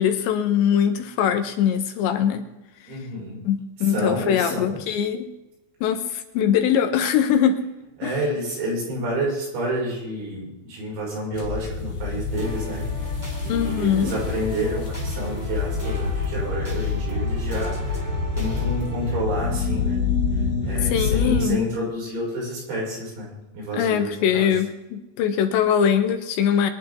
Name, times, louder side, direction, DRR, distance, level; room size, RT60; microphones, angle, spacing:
voice 1, 0.0-2.5 3.4-5.3 5.8-7.7 8.0-8.1 13.5-14.2 20.9-21.6 23.7-26.7, left 8 dB, 75° left, 6 dB, 3.4 m, -22 dB
voice 2, 2.9-3.4 3.8-4.8 8.0-12.8 13.4-18.0 18.4-20.0 20.6-24.5, equal, 80° right, -3 dB, 8.4 m, -29 dB
sound 1, 11.3-21.4, left 4 dB, 45° left, 1.2 m, -27 dB
sound 2, 12.4-19.2, equal, 5° right, 2.0 m, -38 dB
23.5 x 11.0 x 3.7 m, 0.96 s
omnidirectional pair, 5.3 m